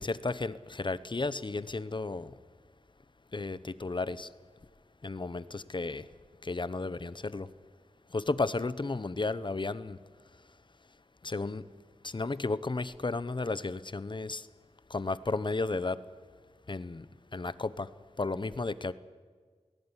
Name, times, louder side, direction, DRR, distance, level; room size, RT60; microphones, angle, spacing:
voice 1, 0.0-2.3 3.3-4.3 5.0-6.1 6.4-7.5 8.1-10.0 11.2-11.6 12.0-14.5 14.9-16.0 16.7-17.1 17.3-17.9 18.2-18.9, left 3 dB, 45° left, 16 dB, 0.9 m, -33 dB
19.5 x 17.5 x 9.9 m, 1.5 s
wide cardioid pair, 65°, 11 cm